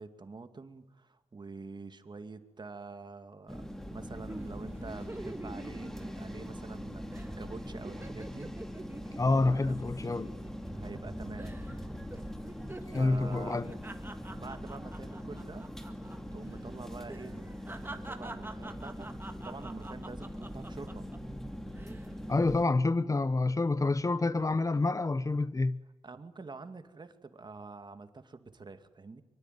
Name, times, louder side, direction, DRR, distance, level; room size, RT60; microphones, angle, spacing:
voice 1, 0.0-8.5 9.3-9.8 10.8-11.5 13.0-13.6 14.3-15.7 16.3-17.4 17.8-21.1 26.0-29.2, right 4 dB, 45° right, 2.4 m, -46 dB
sound 1, 3.5-22.6, equal, 5° left, 2.8 m, -42 dB
sound 2, 4.3-6.8 7.1-7.3 7.6-11.1 11.4-11.8 12.1-16.2 16.4-16.6 17.1-21.2 21.7-22.1, right 2 dB, 20° right, 2.0 m, -47 dB
voice 2, 9.2-10.3 12.9-13.7 22.3-25.8, left 3 dB, 30° left, 0.9 m, -28 dB
24.5 x 24.5 x 9.4 m
wide cardioid pair, 95°, 11 cm